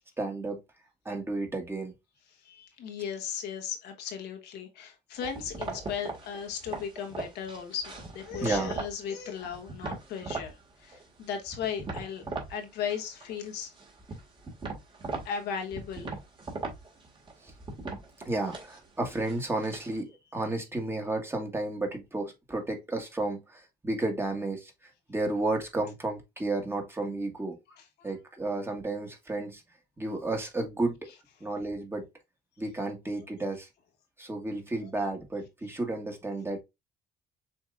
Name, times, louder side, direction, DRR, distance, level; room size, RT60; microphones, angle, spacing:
voice 1, 0.2-0.6 1.0-1.9 8.4-8.7 17.4-17.5 18.2-24.7 25.1-27.6 28.0-29.6 30.0-31.0 31.4-32.0 32.6-33.7 34.2-36.6, right 2 dB, 15° right, 1.5 m, -32 dB
voice 2, 2.4-12.2 12.5-13.7 15.2-16.1 28.0-28.1 34.8-34.9, left 7 dB, 75° left, 1.2 m, -36 dB
sound 1, 5.2-9.0 9.4-10.5 10.9-12.5 12.8-13.5 13.8-20.0, right 3 dB, 30° right, 1.9 m, -39 dB
7.0 x 2.9 x 2.4 m
cardioid pair, 110°, 17 cm